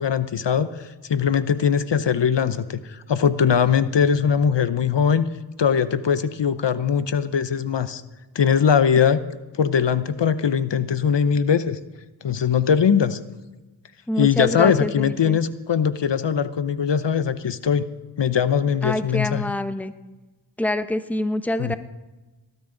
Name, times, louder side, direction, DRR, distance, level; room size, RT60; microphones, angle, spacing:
voice 1, 0.0-5.3 5.6-8.0 8.3-9.2 9.6-11.8 12.2-13.2 14.2-17.8 18.2-19.5 21.6-21.8, left 7 dB, 70° left, 13 dB, 0.8 m, -21 dB
voice 2, 14.1-15.4 18.8-19.9 20.6-21.8, left 1 dB, 5° left, 10 dB, 0.9 m, -26 dB
19.0 x 13.5 x 3.9 m, 1.1 s
wide cardioid pair, 45°, 45 cm